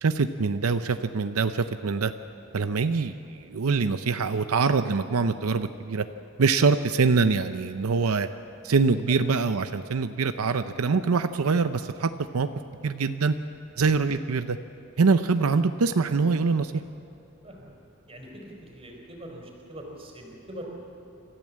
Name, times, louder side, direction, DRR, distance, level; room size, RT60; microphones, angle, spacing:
voice 1, 0.0-2.1 2.5-6.1 6.4-8.3 8.6-12.5 12.8-13.3 13.8-14.6 15.0-16.8, right 4 dB, 90° right, 9 dB, 0.6 m, -24 dB
voice 2, 17.4-17.7 18.1-20.7, right 1 dB, 25° right, 0 dB, 4.2 m, -43 dB
26.5 x 14.0 x 7.5 m, 2.6 s
head